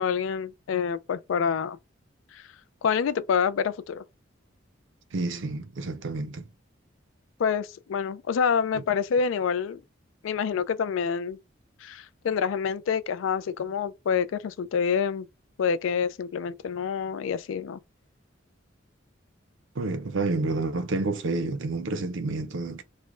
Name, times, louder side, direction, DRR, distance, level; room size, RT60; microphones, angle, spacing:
voice 1, 0.0-1.8 2.3-2.5 2.8-4.0 7.4-9.8 10.2-11.4 11.8-15.3 15.6-17.8, left 6 dB, 75° left, 0.3 m, -27 dB
voice 2, 5.1-6.4 8.7-8.8 19.8-22.8, right 3 dB, 70° right, 0.5 m, -29 dB
3.2 x 2.1 x 3.6 m
head